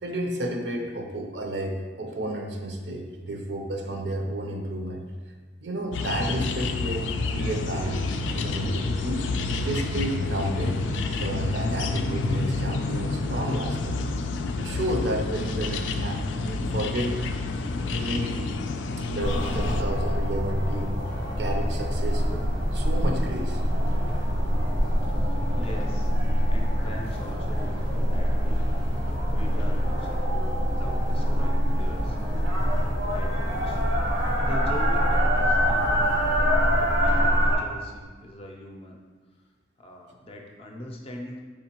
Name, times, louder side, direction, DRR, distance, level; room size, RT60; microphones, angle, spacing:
voice 1, 0.0-5.0 5.6-8.0 8.3-9.2 9.6-10.8 11.1-14.0 14.6-17.3 17.9-18.5 19.0-21.1 21.4-22.5 22.7-23.6, right 1 dB, 65° right, 2 dB, 0.6 m, -31 dB
sound 1, 5.9-19.8, left 3 dB, 85° left, 0.3 m, -29 dB
sound 2, 7.6-13.8, right 1 dB, 20° right, 0.5 m, -46 dB
sound 3, 19.2-37.6, equal, 80° right, 1.1 m, -24 dB
voice 2, 25.5-26.1 26.5-28.7 29.3-33.8 34.1-36.2 36.7-39.0 39.8-41.4, left 1 dB, 30° left, 1 dB, 0.5 m, -42 dB
4.9 x 3.6 x 2.9 m, 1.5 s
head